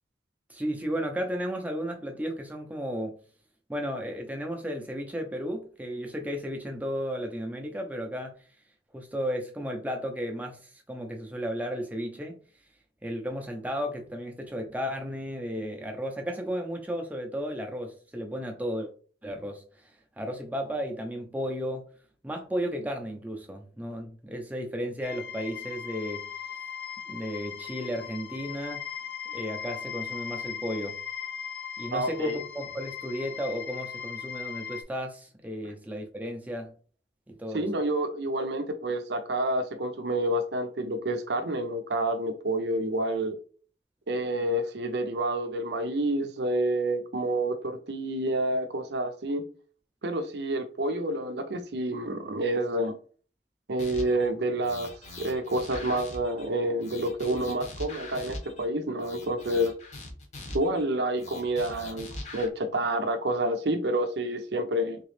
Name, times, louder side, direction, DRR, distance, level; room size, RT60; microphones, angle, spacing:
voice 1, 0.5-3.2 3.7-8.4 8.9-12.4 13.0-18.9 19.2-19.6 20.2-21.9 22.2-26.3 27.1-28.9 29.3-31.0 31.8-36.7 37.3-37.7, equal, 10° right, 0.6 m, -34 dB
sound 1, 25.0-34.8, left 8 dB, 65° left, 0.5 m, -38 dB
voice 2, 31.9-32.4 37.5-43.4 44.1-49.4 50.0-52.9 53.7-54.9 55.2-59.7 60.5-65.0, right 1 dB, 65° right, 0.6 m, -28 dB
sound 2, 53.8-54.3 54.6-56.5 56.8-58.6 59.0-60.8 61.2-62.5, left 2 dB, 35° left, 0.8 m, -42 dB
3.6 x 3.0 x 3.2 m
head